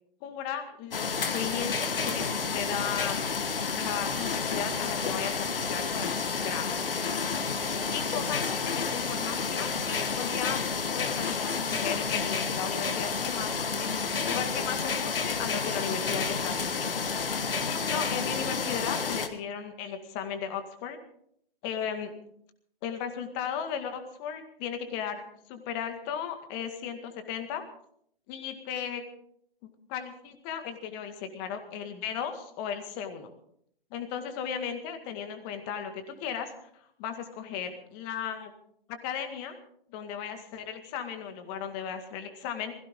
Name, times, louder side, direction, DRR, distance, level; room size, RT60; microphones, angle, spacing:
voice 1, 0.2-2.3 2.5-3.2 3.7-6.8 7.9-9.7 10.2-10.6 10.9-17.0 17.6-21.0 21.6-22.1 22.8-25.2 25.5-27.6 28.3-29.0 29.9-33.3 33.9-36.5 37.0-38.5 38.9-39.6 39.9-42.7, left 8 dB, 25° left, 7 dB, 2.0 m, -36 dB
sound 1, 0.9-19.3, left 5 dB, 70° left, 1.7 m, -30 dB
20.5 x 16.5 x 3.8 m, 0.69 s
figure-of-eight pair, 135°, 29 cm